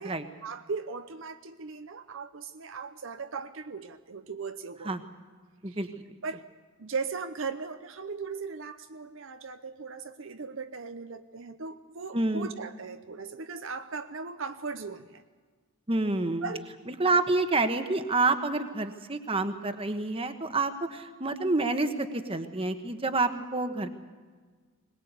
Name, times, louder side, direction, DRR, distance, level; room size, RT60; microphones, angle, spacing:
voice 1, 0.0-5.0 5.7-5.8 6.2-6.4 6.8-15.2 16.4-16.6, right 4 dB, 60° right, 9 dB, 0.7 m, -38 dB
voice 2, 12.1-12.5 15.9-16.5 16.9-23.9, right 3 dB, 25° right, 8 dB, 1.2 m, -28 dB
21.5 x 20.0 x 8.2 m, 1.5 s
head